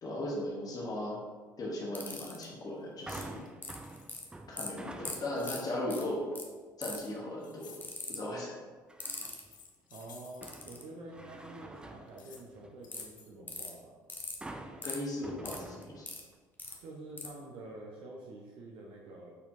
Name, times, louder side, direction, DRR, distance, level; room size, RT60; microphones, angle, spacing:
voice 1, 0.0-1.2 1.6-3.4 4.5-6.2 6.8-7.8 8.1-8.5 14.8-16.1, left 1 dB, 35° left, -3 dB, 1.1 m, -37 dB
sound 1, 1.9-2.4 3.1-3.2 3.6-4.2 4.6-4.7 5.0-5.2 5.4-5.6 5.9-6.0 6.3-6.4 6.8-7.1 7.8-8.2 9.0-9.4 10.4-10.8 12.9-13.0 13.5-13.7 14.1-14.4 14.8-15.0 15.4-16.2 16.6-16.7 17.2-17.3, left 3 dB, 20° left, 0.7 m, -40 dB
sound 2, 3.0-4.6 5.3-5.8 6.9-8.0 9.3-10.4 12.1-12.4 12.8-13.3, left 6 dB, 80° left, 0.4 m, -55 dB
sound 3, 3.1-5.6 6.1-6.4 8.9-9.6 10.0-12.9 14.4-16.3 16.7-16.8, right 2 dB, 10° right, 0.3 m, -48 dB
voice 2, 9.9-13.9 16.8-19.4, right 2 dB, 55° right, -2 dB, 0.7 m, -48 dB
4.2 x 4.1 x 2.6 m, 1.4 s
figure-of-eight pair, 55°, 10 cm